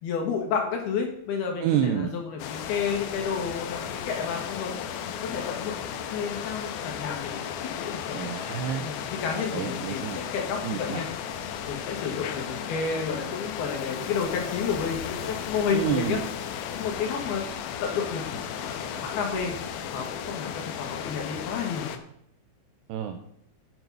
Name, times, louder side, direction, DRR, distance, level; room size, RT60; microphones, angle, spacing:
voice 1, 0.0-4.7 5.2-5.7 6.1-8.3 8.8-11.1 11.7-16.2 16.7-17.5 17.8-19.5 19.9-21.9, left 6 dB, 65° left, 2 dB, 3.1 m, -31 dB
voice 2, 1.6-2.1 8.1-8.8 9.3-10.2 10.6-11.0 15.7-16.3 22.9-23.2, right 9 dB, 80° right, 7 dB, 2.4 m, -28 dB
sound 1, 2.4-22.0, left 8 dB, 80° left, 2.2 m, -35 dB
9.6 x 7.1 x 5.4 m, 0.70 s
omnidirectional pair, 5.4 m